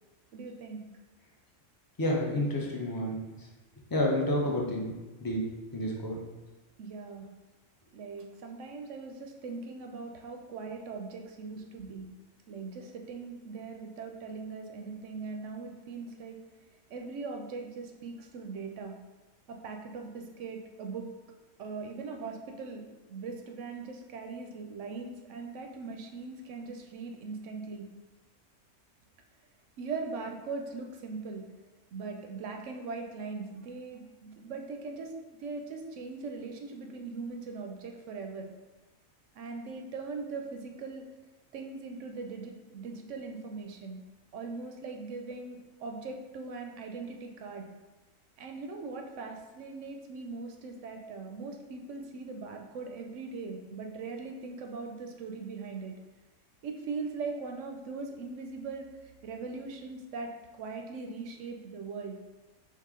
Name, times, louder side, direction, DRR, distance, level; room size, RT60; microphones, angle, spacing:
voice 1, 0.3-0.8 6.8-7.3 7.9-12.1 12.5-16.4 16.9-18.9 19.5-21.1 21.6-22.8 23.1-27.9 29.8-31.4 31.9-35.1 35.4-38.5 39.3-41.1 41.5-44.0 44.3-47.7 48.4-55.9 56.6-58.9 59.2-62.2, right 4 dB, 65° right, 3 dB, 0.8 m, -40 dB
voice 2, 2.0-3.2 3.9-4.9 5.2-5.5 5.7-6.2, left 1 dB, 30° left, -2 dB, 0.4 m, -29 dB
4.7 x 3.1 x 3.7 m, 1.2 s
omnidirectional pair, 1.5 m